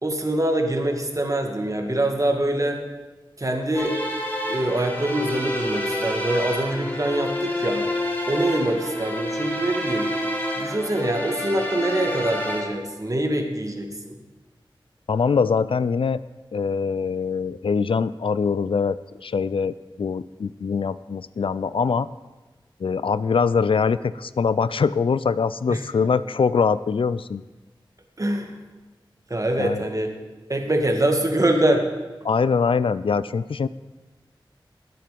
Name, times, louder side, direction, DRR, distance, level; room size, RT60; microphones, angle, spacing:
voice 1, 0.0-2.8 3.4-3.9 4.5-7.9 8.3-10.1 10.6-13.9 25.7-25.8 28.2-28.5 29.3-30.1 30.5-31.9, right 1 dB, 40° right, 3 dB, 2.0 m, -24 dB
sound 1, 3.7-12.6, left 1 dB, 20° left, 2.4 m, -28 dB
voice 2, 15.1-16.2 16.5-22.1 22.8-27.4 29.6-29.8 32.2-33.7, left 5 dB, 75° left, 17 dB, 0.4 m, -23 dB
19.5 x 7.7 x 5.2 m, 1.2 s
wide cardioid pair, 55°, 9 cm